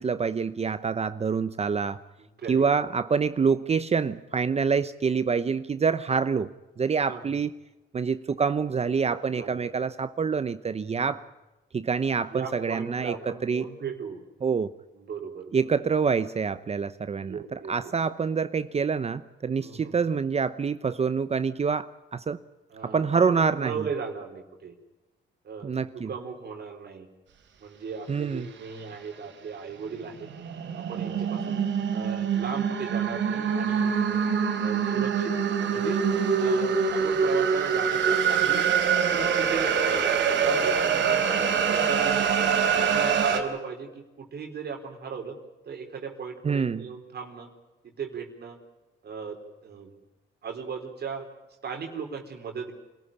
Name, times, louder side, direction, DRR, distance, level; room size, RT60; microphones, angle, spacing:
voice 1, 0.0-2.0 2.5-6.5 6.8-7.5 7.9-11.3 11.7-13.7 14.4-14.7 15.5-22.4 22.8-23.9 25.6-26.1 28.1-28.5 46.4-46.9, right 5 dB, 30° right, 0.8 m, -26 dB
voice 2, 12.3-14.2 14.9-15.7 17.1-17.9 19.6-20.0 22.7-24.8 25.4-27.1 27.6-30.3 30.8-31.6 31.9-34.2 34.6-36.0 36.4-38.6 39.1-41.3 41.7-45.3 45.7-47.5 48.0-48.6 49.0-49.9 50.4-51.3 51.6-52.7, right 6 dB, 55° right, 3.7 m, -37 dB
sound 1, 30.2-43.4, right 6 dB, 70° right, 3.8 m, -24 dB
26.0 x 14.0 x 10.0 m
cardioid pair, 90°, 20 cm